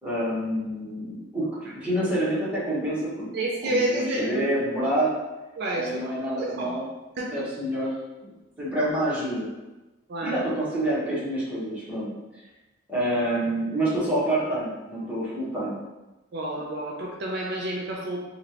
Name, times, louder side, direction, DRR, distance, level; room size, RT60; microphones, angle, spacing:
voice 1, 0.0-3.3 3.6-5.1 5.7-6.9 7.3-7.9 8.2-8.3 8.6-9.5 10.2-12.1 12.9-15.8, right 1 dB, 10° right, -10 dB, 1.1 m, -27 dB
voice 2, 3.3-4.5 5.6-5.9 6.4-6.8 7.2-7.3 10.1-10.4 16.3-18.2, right 1 dB, 60° right, -2 dB, 0.4 m, -29 dB
3.1 x 2.4 x 2.8 m, 1.1 s
head